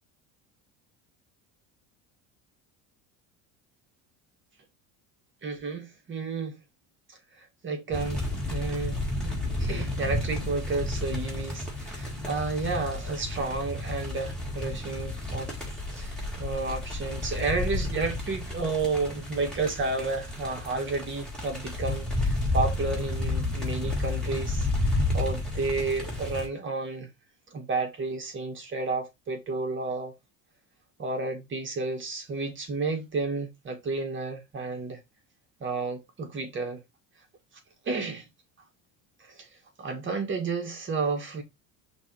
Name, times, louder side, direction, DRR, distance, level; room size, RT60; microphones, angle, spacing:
voice 1, 5.4-6.6 7.4-9.0 9.2-15.6 15.9-27.1 27.5-30.1 31.0-35.0 35.6-36.8 37.9-38.2 39.3-39.5 39.8-41.4, right 3 dB, 35° right, 2.1 m, -31 dB
sound 1, 7.9-26.5, left 2 dB, ahead, 3.2 m, -31 dB
6.1 x 3.4 x 4.6 m
cardioid pair, 120°, 36 cm